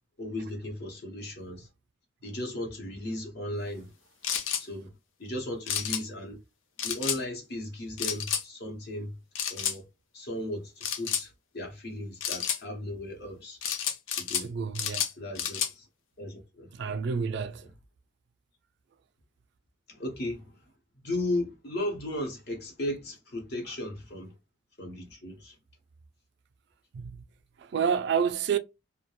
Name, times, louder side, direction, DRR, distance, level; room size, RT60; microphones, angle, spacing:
voice 1, 0.2-1.7 2.2-3.9 4.6-4.9 5.2-6.4 6.8-9.1 9.5-9.8 10.1-13.6 14.1-14.5 15.2-15.9 16.2-17.0 17.6-17.7 19.9-20.6 21.0-24.4 24.8-25.6, left 1 dB, 55° left, 0.8 m, -36 dB
sound 1, 4.2-4.6 5.7-6.0 6.8-7.2 8.0-8.4 9.4-9.8 10.8-11.3 12.2-12.6 13.6-14.5 14.8-15.7, left 8 dB, 85° left, 0.6 m, -30 dB
voice 2, 14.4-15.0 16.7-17.6 26.9-27.2 27.7-28.6, right 6 dB, 60° right, 0.3 m, -28 dB
2.3 x 2.1 x 2.9 m
head